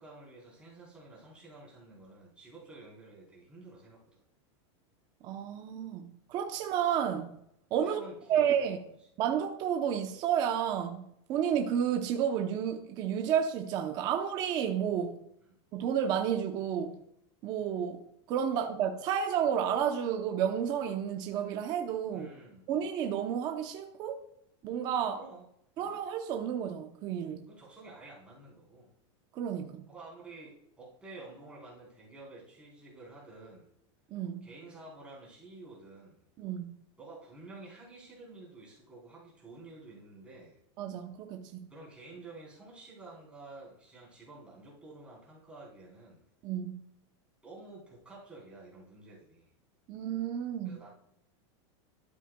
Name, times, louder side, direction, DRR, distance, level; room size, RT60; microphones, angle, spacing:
voice 1, 0.0-4.2 7.8-8.8 15.5-15.6 22.1-22.7 25.0-25.4 25.7-25.9 27.5-28.9 29.9-33.7 34.4-36.2 37.0-40.6 41.7-46.2 47.4-49.5 50.6-50.9, right 3 dB, 5° right, 3.8 m, -50 dB
voice 2, 5.2-7.4 7.7-8.0 8.3-8.8 9.2-15.2 15.7-17.0 17.4-22.3 22.7-24.2 24.6-25.2 25.8-27.5 29.3-29.9 34.1-34.5 36.4-36.8 40.8-41.7 46.4-46.8 49.9-50.8, right 8 dB, 25° right, 0.7 m, -31 dB
12.5 x 8.2 x 2.2 m
supercardioid pair, 170°, 15 cm